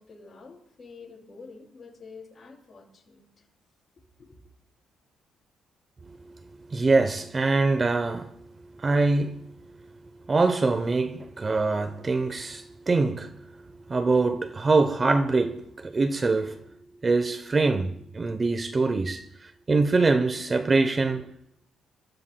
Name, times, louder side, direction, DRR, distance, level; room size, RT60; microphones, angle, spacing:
voice 1, 0.0-3.5 4.2-4.5, left 4 dB, 35° left, 7.8 m, -48 dB
voice 2, 6.1-9.9 10.2-16.7 17.0-21.3, right 3 dB, 30° right, 0.8 m, -24 dB
30.0 x 14.5 x 2.3 m
cardioid pair, 90°, 0 cm